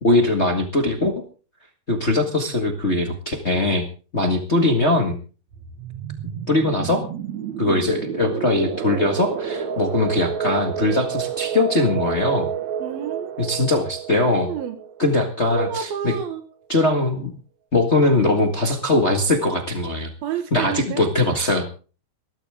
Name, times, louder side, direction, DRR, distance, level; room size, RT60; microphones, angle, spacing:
voice 1, 0.0-1.1 1.9-3.8 4.1-5.2 6.5-7.1 7.6-12.5 13.4-14.5 15.0-16.1 16.7-17.3 17.7-20.1 20.5-21.7, left 2 dB, 40° left, 5 dB, 0.9 m, -21 dB
sound 1, 5.5-16.0, right 8 dB, 55° right, 2.4 m, -30 dB
voice 2, 12.8-13.6 14.4-14.8 15.5-16.4 20.2-21.1, right 8 dB, 75° right, 8 dB, 3.2 m, -30 dB
20.0 x 13.5 x 3.6 m, 0.37 s
omnidirectional pair, 4.4 m